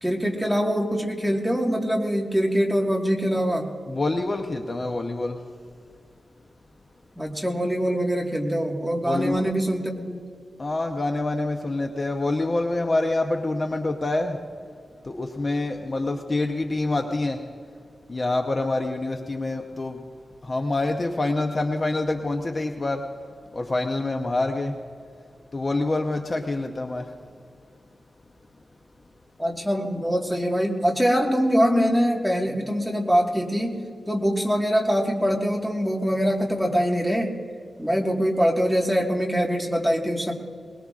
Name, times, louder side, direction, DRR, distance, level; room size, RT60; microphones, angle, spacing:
voice 1, 0.0-3.7 7.2-10.2 29.4-37.4 37.8-40.3, equal, ahead, -1 dB, 1.6 m, -23 dB
voice 2, 3.9-5.4 9.0-9.5 10.6-14.4 15.0-17.4 18.1-20.0 20.4-23.0 23.5-24.8 25.5-27.1, left 2 dB, 30° left, 3 dB, 0.8 m, -26 dB
22.0 x 20.5 x 2.5 m, 2.2 s
wide cardioid pair, 170°, 0 cm